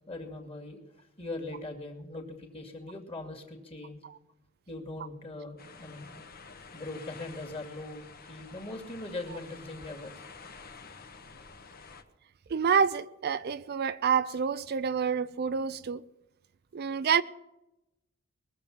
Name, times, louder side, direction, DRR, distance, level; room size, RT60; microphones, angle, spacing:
voice 1, 0.1-4.0 4.7-6.1 6.7-10.1, left 2 dB, 25° left, 2.4 m, -41 dB
sound 1, 5.6-12.0, left 5 dB, 45° left, 1.2 m, -49 dB
voice 2, 12.5-16.0 16.7-17.2, right 6 dB, 50° right, 0.4 m, -27 dB
21.5 x 7.4 x 7.3 m
head